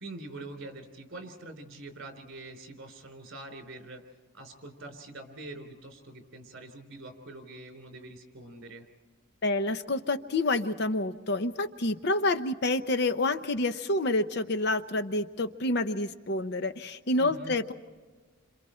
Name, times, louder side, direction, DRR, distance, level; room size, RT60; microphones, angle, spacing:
voice 1, 0.0-4.0 4.3-8.9 17.2-17.6, right 2 dB, 55° right, 4 dB, 3.5 m, -44 dB
voice 2, 9.4-17.7, left 2 dB, 50° left, 10 dB, 0.7 m, -28 dB
29.0 x 26.5 x 4.4 m, 1.4 s
head